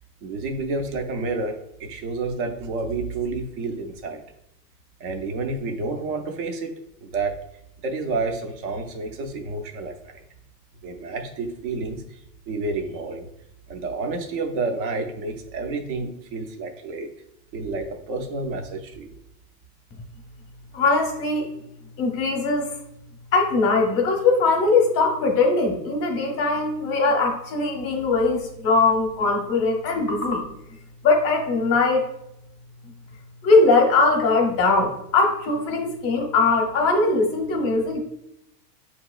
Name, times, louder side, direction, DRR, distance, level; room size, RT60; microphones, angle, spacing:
voice 1, 0.2-4.2 5.0-6.7 7.0-7.3 7.8-10.2 10.8-12.2 12.5-13.3 13.7-17.1 17.5-19.1, right 3 dB, 35° right, 5 dB, 0.4 m, -29 dB
voice 2, 20.7-21.5 22.0-22.7 23.3-30.5 31.0-32.1 33.4-38.0, left 3 dB, 30° left, 2 dB, 0.7 m, -20 dB
7.4 x 2.9 x 2.3 m, 0.81 s
supercardioid pair, 165°, 49 cm